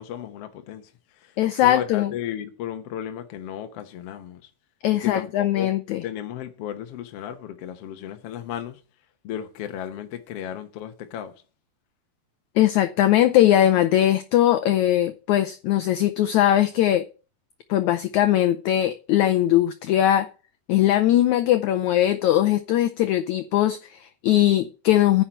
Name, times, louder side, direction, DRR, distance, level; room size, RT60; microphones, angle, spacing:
voice 1, 0.0-4.5 4.9-5.7 6.0-8.8 9.2-11.3, left 10 dB, 75° left, 1.4 m, -34 dB
voice 2, 1.4-2.1 4.8-6.0 12.6-17.0 17.7-20.3 20.7-25.2, left 12 dB, 90° left, 1.6 m, -20 dB
10.0 x 5.8 x 7.7 m
omnidirectional pair, 4.2 m